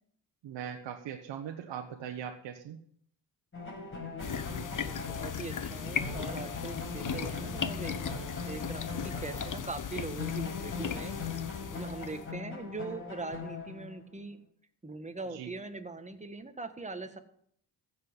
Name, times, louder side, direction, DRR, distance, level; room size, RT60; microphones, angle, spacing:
voice 1, 0.4-2.8 15.3-15.5, right 8 dB, 75° right, 3 dB, 1.3 m, -40 dB
sound 1, 3.5-9.9 10.2-14.1, left 4 dB, 30° left, 5.8 m, -40 dB
sound 2, 4.2-12.3, left 7 dB, 45° left, 1.2 m, -37 dB
voice 2, 4.8-11.1 11.7-14.4 14.8-17.2, right 3 dB, 15° right, 7 dB, 1.6 m, -41 dB
15.5 x 7.5 x 7.9 m, 0.66 s
cardioid pair, 85°, 43 cm